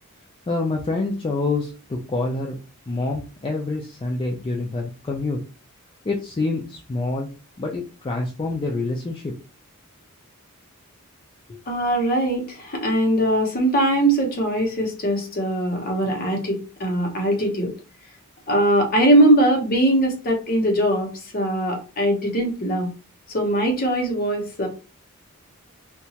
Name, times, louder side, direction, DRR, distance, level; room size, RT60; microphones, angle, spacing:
voice 1, 0.5-2.5 2.9-5.4 6.0-7.3 7.6-9.3, left 3 dB, 25° left, -1 dB, 0.3 m, -26 dB
voice 2, 11.7-17.7 18.5-22.9 23.3-24.7, right 1 dB, 40° left, 2 dB, 0.8 m, -21 dB
2.8 x 2.2 x 2.8 m, 0.34 s
head